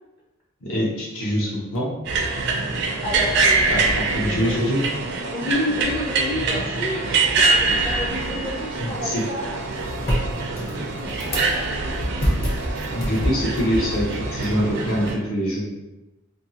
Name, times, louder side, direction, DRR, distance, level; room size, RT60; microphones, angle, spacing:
voice 1, 0.6-1.9 3.7-4.8 8.8-9.2 12.3-12.4 12.9-15.6, equal, 75° left, -3 dB, 0.9 m, -24 dB
sound 1, 2.0-15.1, right 3 dB, 55° right, 0.4 m, -24 dB
voice 2, 3.0-4.7 5.3-9.6 10.7-11.2, left 1 dB, 20° left, -6 dB, 0.4 m, -30 dB
Musical instrument, 4.8-10.0, right 2 dB, 80° right, 0.7 m, -44 dB
sound 2, 8.1-15.1, equal, 45° left, 0.8 m, -29 dB
2.7 x 2.6 x 2.8 m, 1.0 s
head